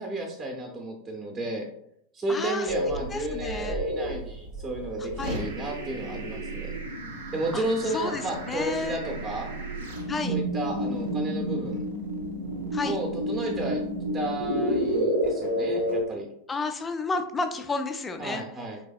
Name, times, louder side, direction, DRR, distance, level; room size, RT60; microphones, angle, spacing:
voice 1, 0.0-1.6 2.1-6.8 7.3-9.5 10.3-11.8 12.8-13.8 14.1-16.3 18.2-18.8, right 2 dB, 20° right, 1 dB, 0.7 m, -32 dB
voice 2, 2.3-2.7 3.1-3.8 5.0-5.4 7.5-7.6 7.9-9.0 10.1-10.4 12.7-13.0 16.5-18.4, left 3 dB, 15° left, 7 dB, 0.4 m, -31 dB
sound 1, 2.7-16.0, equal, 65° right, 0.7 m, -31 dB
4.7 x 3.4 x 2.3 m, 0.72 s
figure-of-eight pair, 90°, 0 cm